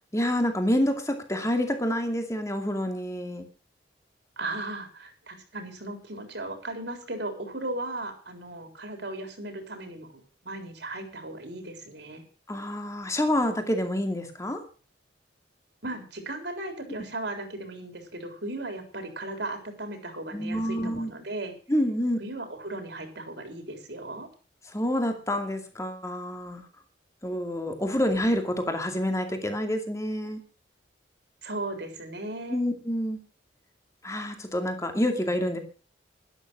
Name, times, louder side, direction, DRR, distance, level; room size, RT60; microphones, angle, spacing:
voice 1, 0.1-3.5 12.5-14.6 20.3-21.1 21.7-22.2 24.7-26.7 27.2-30.4 32.5-33.2 34.0-35.6, left 1 dB, 15° left, 5 dB, 2.3 m, -27 dB
voice 2, 4.4-12.2 15.8-21.6 22.2-24.3 31.4-32.6, right 2 dB, 60° right, 5 dB, 3.8 m, -36 dB
12.0 x 12.0 x 6.2 m, 0.37 s
head